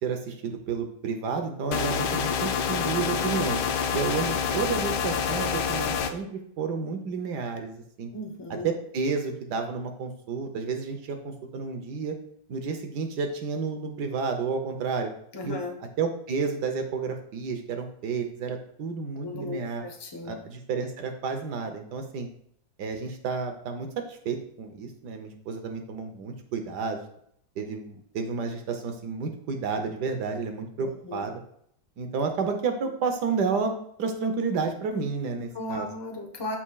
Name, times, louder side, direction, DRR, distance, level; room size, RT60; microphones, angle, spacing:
voice 1, 0.0-3.6 3.9-8.1 8.5-12.1 12.5-15.1 15.4-15.6 16.0-19.8 20.2-22.3 22.8-27.0 27.6-31.4 32.0-35.9, right 5 dB, 70° right, 5 dB, 1.4 m, -31 dB
sound 1, 1.7-6.1, left 7 dB, 70° left, 1.1 m, -27 dB
voice 2, 8.1-8.7 15.3-15.7 19.2-20.3 30.8-31.3 35.5-36.6, left 2 dB, 20° left, 2 dB, 0.8 m, -36 dB
13.0 x 4.4 x 2.3 m, 0.67 s
omnidirectional pair, 1.9 m